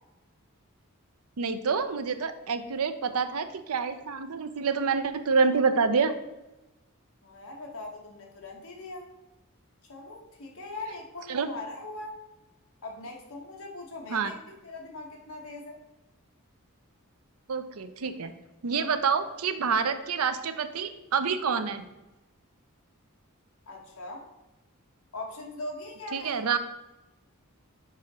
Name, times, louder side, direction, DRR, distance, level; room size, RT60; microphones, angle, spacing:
voice 1, 1.4-6.1 11.3-11.5 14.1-14.3 17.5-18.3 18.6-21.9 26.1-26.6, right 5 dB, 85° right, 10 dB, 0.6 m, -27 dB
voice 2, 7.2-9.1 9.9-12.2 12.8-14.4 14.6-15.8 23.7-24.3 25.1-26.5, left 2 dB, 70° left, 1 dB, 1.5 m, -40 dB
6.2 x 5.1 x 4.2 m, 1.0 s
head